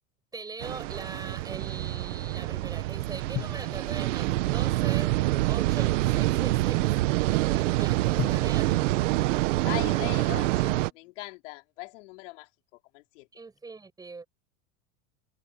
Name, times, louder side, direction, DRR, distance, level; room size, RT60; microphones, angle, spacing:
voice 1, 0.3-5.1 5.5-8.9 13.3-14.3, right 4 dB, 10° right, 7.9 m, -41 dB
sound 1, 0.6-10.9, right 18 dB, 70° right, 1.4 m, -26 dB
sound 2, 3.4-5.7 8.2-11.2, left 13 dB, 25° left, 1.1 m, -42 dB
voice 2, 9.6-12.5 12.9-13.3, left 21 dB, 65° left, 4.5 m, -40 dB
supercardioid pair, 165°, 38 cm